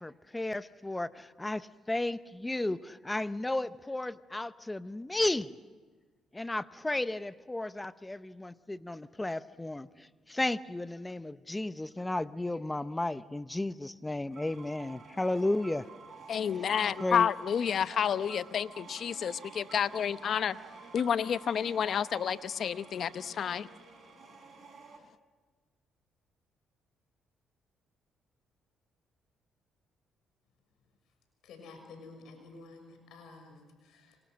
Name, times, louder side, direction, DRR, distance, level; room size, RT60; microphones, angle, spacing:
voice 1, 0.0-5.6 6.3-15.9 17.0-17.3, left 2 dB, 15° left, 14 dB, 0.8 m, -34 dB
sound 1, 14.3-25.0, right 5 dB, 55° right, 3.9 m, -51 dB
voice 2, 16.3-20.6 20.9-23.7, left 8 dB, 60° left, 14 dB, 0.8 m, -30 dB
voice 3, 31.4-34.2, left 3 dB, 80° left, 5 dB, 6.4 m, -51 dB
28.0 x 25.0 x 6.4 m, 1.4 s
supercardioid pair, 75°, 0 cm